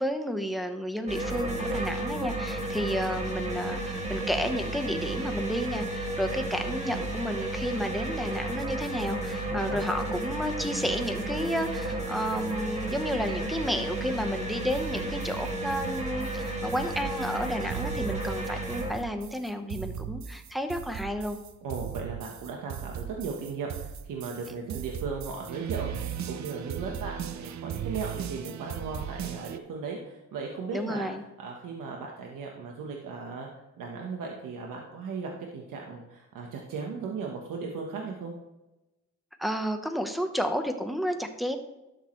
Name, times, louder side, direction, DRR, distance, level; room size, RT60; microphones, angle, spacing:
voice 1, 0.0-21.4 30.7-31.2 39.4-41.6, equal, ahead, 6 dB, 1.0 m, -31 dB
sound 1, 1.1-18.9, right 1 dB, 20° right, 2.1 m, -33 dB
voice 2, 9.5-9.8 21.6-26.0 26.2-31.1 31.4-33.5 33.8-38.3, right 5 dB, 85° right, 0 dB, 1.3 m, -37 dB
sound 2, 14.7-29.6, right 9 dB, 60° right, 0.7 m, -38 dB
12.0 x 6.6 x 3.2 m, 0.98 s
cardioid pair, 100°, 31 cm